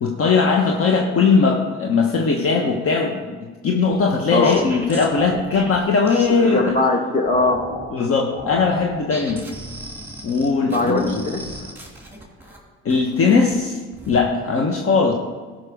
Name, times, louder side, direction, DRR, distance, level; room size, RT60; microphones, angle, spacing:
voice 1, 0.0-6.6 7.9-9.4 10.2-11.2 12.8-13.8 14.1-15.1, left 4 dB, 45° left, 1 dB, 1.3 m, -19 dB
sound 1, 3.9-6.8 7.3-7.9 8.3-12.6 12.9-13.5 13.9-14.3, equal, 5° right, 3.0 m, -35 dB
voice 2, 6.3-7.6 10.6-11.7, left 2 dB, 25° left, 2 dB, 1.9 m, -21 dB
13.5 x 5.9 x 5.2 m, 1.5 s
supercardioid pair, 85°, 31 cm